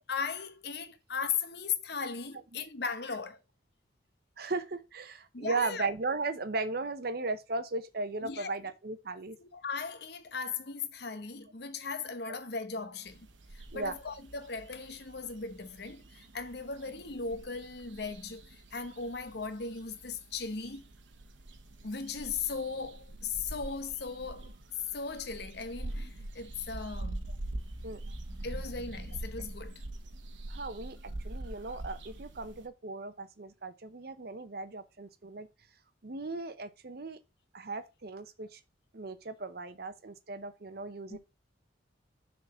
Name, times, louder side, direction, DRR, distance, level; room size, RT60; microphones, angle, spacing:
voice 1, 0.1-3.4 5.3-5.8 8.2-8.5 9.4-13.3 13.5-20.8 21.8-24.5 24.9-27.2 28.4-29.8 41.1-41.2, left 5 dB, 55° left, 0.9 m, -37 dB
voice 2, 4.4-9.4 12.2-12.3 13.7-14.0 27.8-28.0 30.5-35.5 36.0-37.2 37.5-38.6 38.9-41.2, right 3 dB, 55° right, 0.7 m, -37 dB
sound 1, 13.1-32.7, right 1 dB, 80° right, 1.1 m, -44 dB
sound 2, 26.1-29.8, equal, 20° right, 0.8 m, -48 dB
6.7 x 3.9 x 5.6 m
head